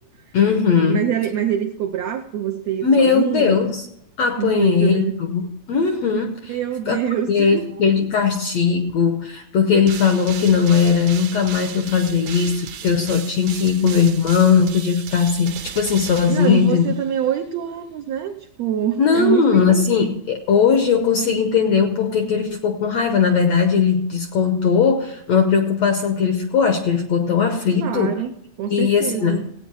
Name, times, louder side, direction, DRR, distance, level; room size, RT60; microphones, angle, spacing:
voice 1, 0.3-1.1 2.8-3.9 4.2-5.4 5.7-6.6 6.9-7.0 7.3-16.8 19.0-28.2 28.7-29.5, left 6 dB, 70° left, 6 dB, 1.6 m, -18 dB
voice 2, 0.9-3.6 4.4-5.2 6.5-7.6 16.3-19.8 27.7-28.3 28.6-29.5, right 10 dB, 85° right, 4 dB, 1.5 m, -25 dB
sound 1, 9.9-17.1, right 9 dB, 70° right, 1.7 m, -35 dB
16.5 x 9.0 x 4.6 m, 0.78 s
omnidirectional pair, 4.0 m